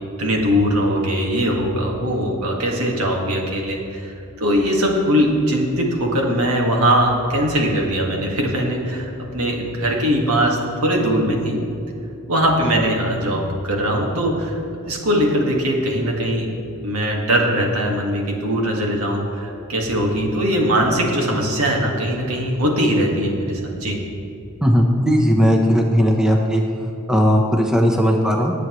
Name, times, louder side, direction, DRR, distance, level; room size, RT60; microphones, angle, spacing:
voice 1, 0.2-11.6 12.3-14.6 14.9-16.5 16.8-24.0, equal, 80° right, 0 dB, 1.9 m, -20 dB
voice 2, 24.6-26.6 27.1-28.5, equal, 5° right, 1 dB, 0.8 m, -17 dB
19.0 x 8.1 x 3.1 m, 2.7 s
head